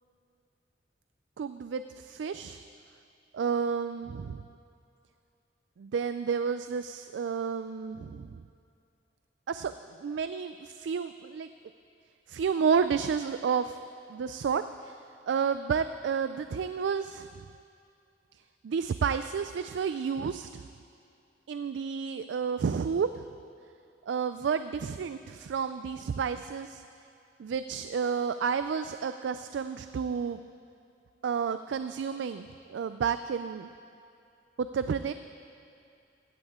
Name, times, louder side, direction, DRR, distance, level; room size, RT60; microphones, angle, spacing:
voice 1, 1.4-2.6 3.3-4.4 5.8-8.4 9.5-11.5 12.3-13.8 14.1-17.3 18.6-20.7 21.5-23.2 24.1-26.8 27.4-30.4 31.2-33.7 34.6-35.1, right 6 dB, 70° right, 11 dB, 0.3 m, -31 dB
17.0 x 14.0 x 3.6 m, 2.5 s
head